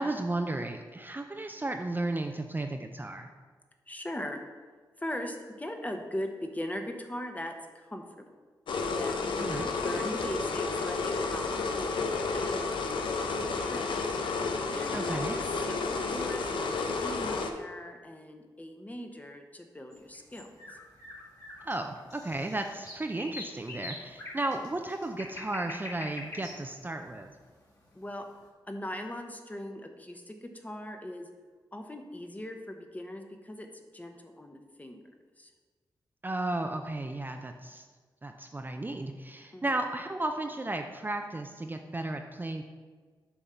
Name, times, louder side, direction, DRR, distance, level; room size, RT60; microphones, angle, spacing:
voice 1, 0.0-3.3 9.4-9.7 14.9-15.4 21.6-27.3 36.2-37.9 38.2-42.6, right 2 dB, 25° right, 4 dB, 0.5 m, -34 dB
voice 2, 3.9-4.4 5.0-8.2 8.9-9.3 9.7-12.9 13.2-14.0 14.7-20.8 24.5-24.6 27.9-28.3 28.6-31.3 31.7-35.0 35.4-35.5 39.5-39.8, left 1 dB, 20° left, 4 dB, 0.9 m, -40 dB
sound 1, 8.7-17.5, left 4 dB, 80° left, 0.6 m, -31 dB
sound 2, 19.9-28.1, left 2 dB, 45° left, 2.0 m, -44 dB
7.0 x 3.6 x 5.5 m, 1.4 s
cardioid pair, 55°, 8 cm